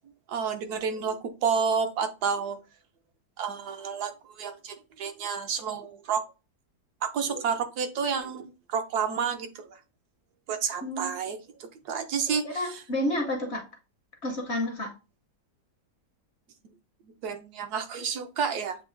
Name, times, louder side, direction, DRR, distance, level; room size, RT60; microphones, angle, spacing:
voice 1, 0.3-2.6 3.4-6.2 7.0-9.8 10.5-12.8 17.2-18.8, right 6 dB, 70° right, 1.1 m, -30 dB
voice 2, 10.8-11.2 12.4-13.6 14.2-14.9, left 1 dB, 55° left, 0.8 m, -30 dB
7.8 x 2.7 x 2.5 m
omnidirectional pair, 1.8 m